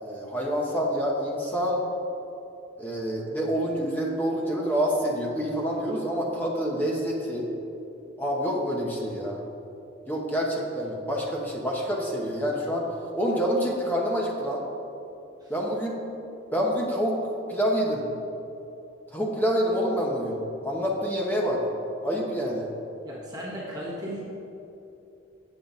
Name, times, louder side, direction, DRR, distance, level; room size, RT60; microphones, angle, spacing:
voice 1, 0.0-1.8 2.8-7.5 8.2-9.4 10.1-12.9 13.2-14.6 15.5-16.0 16.5-18.1 19.1-21.6 22.0-22.7, equal, 10° left, -2 dB, 0.9 m, -27 dB
voice 2, 23.0-24.2, equal, 20° right, -7 dB, 1.4 m, -36 dB
7.7 x 7.1 x 3.9 m, 2.9 s
head